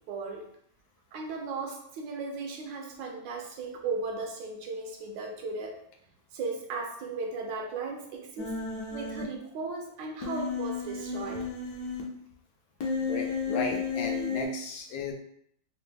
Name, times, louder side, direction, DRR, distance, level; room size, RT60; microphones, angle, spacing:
voice 1, 0.1-0.5 1.1-5.8 6.3-8.6 8.9-11.5, right 4 dB, 75° right, 1 dB, 1.3 m, -36 dB
Human voice, 8.4-9.2 10.2-12.0 12.8-14.4, left 5 dB, 65° left, 1.2 m, -32 dB
voice 2, 13.1-15.1, left 3 dB, 80° left, 3 dB, 1.3 m, -34 dB
4.1 x 2.1 x 3.3 m, 0.69 s
omnidirectional pair, 2.0 m